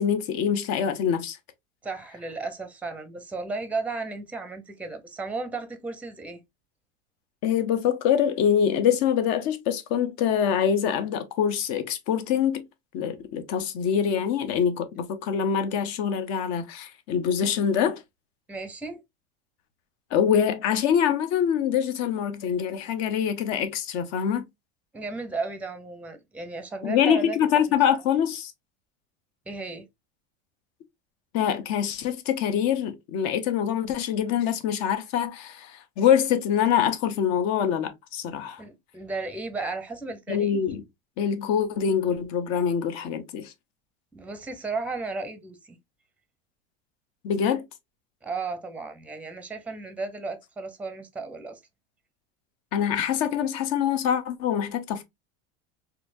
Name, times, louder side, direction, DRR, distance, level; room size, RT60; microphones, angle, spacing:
voice 1, 0.0-1.4 7.4-12.6 12.9-18.0 20.1-24.4 26.8-28.5 31.3-38.6 40.3-40.8 41.2-43.5 47.2-47.6 52.7-55.0, left 8 dB, 55° left, 0.9 m, -24 dB
voice 2, 1.8-6.4 18.5-19.0 24.9-27.4 29.5-29.9 38.6-40.5 44.1-45.8 48.2-51.6, right 3 dB, 5° right, 0.6 m, -34 dB
4.2 x 2.7 x 2.6 m
supercardioid pair, 130°, 32 cm